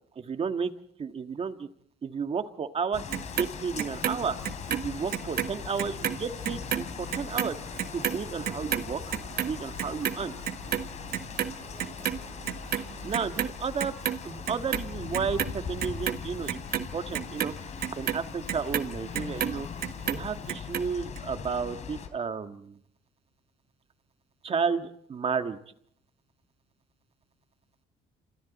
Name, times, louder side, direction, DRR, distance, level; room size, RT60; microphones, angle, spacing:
voice 1, 0.2-0.7 1.0-1.7 2.0-4.4 4.7-7.6 7.9-9.0 9.3-10.4 12.8-13.9 14.2-17.5 18.0-19.7 20.1-22.7 24.4-25.6, right 6 dB, 35° right, 8 dB, 1.7 m, -32 dB
sound 1, 2.9-22.1, left 6 dB, 45° left, 3.3 m, -40 dB
Clock, 3.1-5.5 5.8-12.2 12.4-13.5 13.8-14.8 15.1-19.5 19.8-20.8 21.2-21.3, right 10 dB, 60° right, 1.4 m, -31 dB
sound 2, 4.8-13.3, right 5 dB, 90° right, 7.6 m, -50 dB
28.5 x 27.0 x 4.2 m, 0.69 s
cardioid pair, 110°, 17 cm